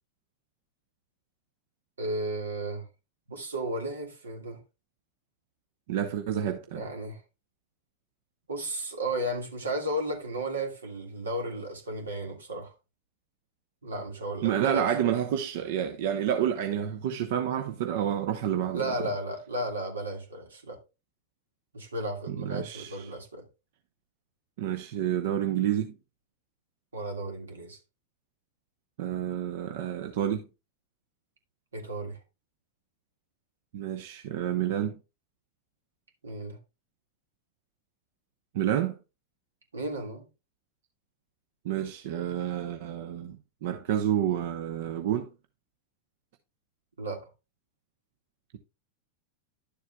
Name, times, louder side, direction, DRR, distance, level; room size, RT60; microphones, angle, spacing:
voice 1, 2.0-2.9 3.3-4.6 6.7-7.2 8.5-12.7 13.8-14.9 18.7-20.8 21.7-23.4 26.9-27.8 31.7-32.2 36.2-36.6 39.7-40.3 47.0-47.3, right 1 dB, 90° right, 1.9 m, -34 dB
voice 2, 5.9-6.8 14.4-18.9 22.3-23.1 24.6-25.9 29.0-30.5 33.7-34.9 38.5-39.0 41.6-45.3, right 10 dB, 65° right, 0.7 m, -29 dB
11.0 x 7.2 x 2.3 m
hypercardioid pair, 100°, 0 cm